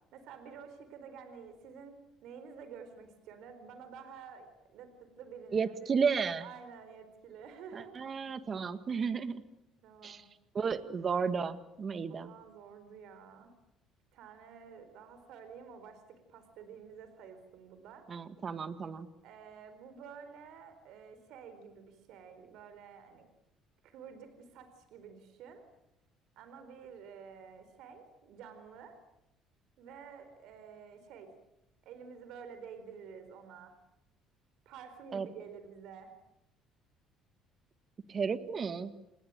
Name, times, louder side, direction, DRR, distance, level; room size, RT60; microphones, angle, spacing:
voice 1, 0.1-1.9 2.2-5.9 6.4-8.0 9.8-10.2 12.1-13.5 14.1-18.1 19.2-23.3 23.8-25.6 26.4-29.0 29.8-31.3 31.8-33.7 34.7-36.1, right 6 dB, 70° right, 9 dB, 4.3 m, -50 dB
voice 2, 5.5-6.5 7.8-9.4 10.0-10.2 10.5-12.3 18.1-19.1 35.1-35.3 38.1-38.9, right 6 dB, 35° right, 11 dB, 1.8 m, -33 dB
28.5 x 20.5 x 9.1 m, 0.84 s
cardioid pair, 125°, 0 cm